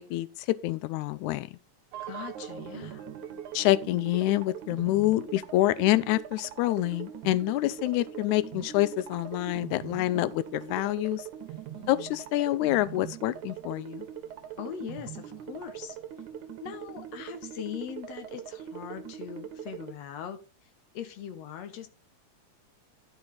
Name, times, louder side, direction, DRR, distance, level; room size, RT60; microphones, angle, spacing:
voice 1, 0.0-1.5 3.5-11.2 11.9-14.1, left 16 dB, 90° left, 2.0 m, -27 dB
sound 1, 1.9-19.9, right 9 dB, 80° right, 2.3 m, -42 dB
voice 2, 2.0-3.1 11.7-12.2 14.6-16.0 16.6-20.4 20.9-21.9, left 9 dB, 70° left, 2.0 m, -41 dB
11.0 x 6.1 x 4.0 m
omnidirectional pair, 3.3 m